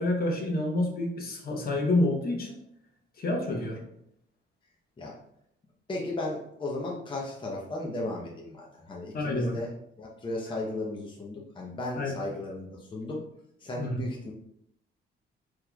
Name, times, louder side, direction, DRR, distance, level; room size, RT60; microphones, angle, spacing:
voice 1, 0.0-2.6 3.2-3.8 9.1-9.6 12.0-12.1 13.8-14.0, left 2 dB, 50° left, 0 dB, 1.0 m, -28 dB
voice 2, 5.9-9.7 10.0-13.2 13.6-14.3, left 2 dB, 25° left, -3 dB, 0.7 m, -35 dB
3.9 x 3.1 x 2.3 m, 0.74 s
cardioid pair, 90°, 20 cm